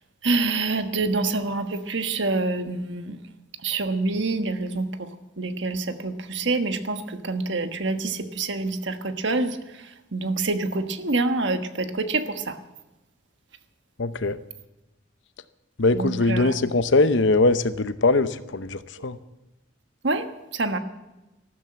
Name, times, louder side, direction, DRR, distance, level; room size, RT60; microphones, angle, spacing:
voice 1, 0.2-3.2 3.6-5.1 5.4-12.6 15.9-16.6 19.0-19.1 20.0-20.3 20.5-20.8, right 3 dB, 70° right, 8 dB, 1.3 m, -26 dB
voice 2, 14.0-14.4 15.8-19.2, left 3 dB, 70° left, 13 dB, 0.8 m, -21 dB
14.0 x 13.0 x 7.6 m, 1.0 s
head